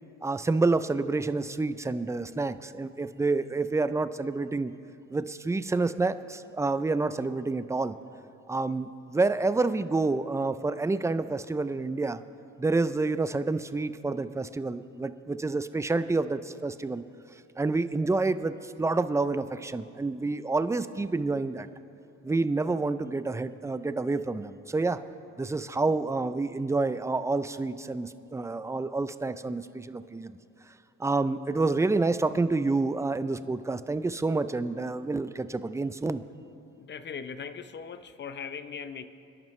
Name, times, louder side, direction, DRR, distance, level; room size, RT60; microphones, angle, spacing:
voice 1, 0.2-4.7 5.1-8.0 8.5-12.2 12.6-17.0 17.6-21.7 22.2-25.0 25.4-30.3 31.0-36.2, right 3 dB, 10° right, 0.4 m, -28 dB
voice 2, 36.8-39.1, left 6 dB, 35° left, 0.7 m, -39 dB
28.0 x 10.5 x 3.2 m
cardioid pair, 90°, 30 cm